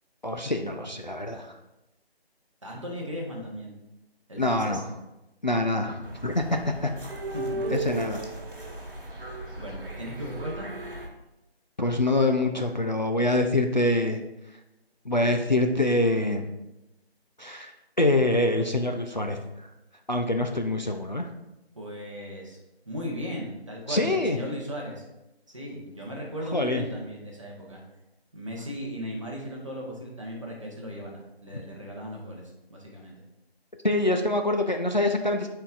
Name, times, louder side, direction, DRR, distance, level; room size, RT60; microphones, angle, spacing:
voice 1, 0.2-1.5 4.4-4.8 5.4-6.9 7.7-8.2 11.8-14.2 15.1-16.5 17.4-17.7 18.0-19.4 20.1-21.2 23.9-24.4 26.5-26.9 33.8-35.5, left 2 dB, 45° left, 4 dB, 0.4 m, -25 dB
voice 2, 2.6-3.7 4.3-4.8 7.3-7.7 8.6-8.7 9.6-10.7 21.7-22.6 22.8-25.0 25.5-27.8 28.3-32.4 32.7-33.1, equal, 30° right, -2 dB, 1.1 m, -37 dB
sound 1, 6.0-11.1, right 2 dB, 60° right, 1.5 m, -36 dB
9.1 x 4.5 x 2.5 m, 0.94 s
figure-of-eight pair, 165°, 32 cm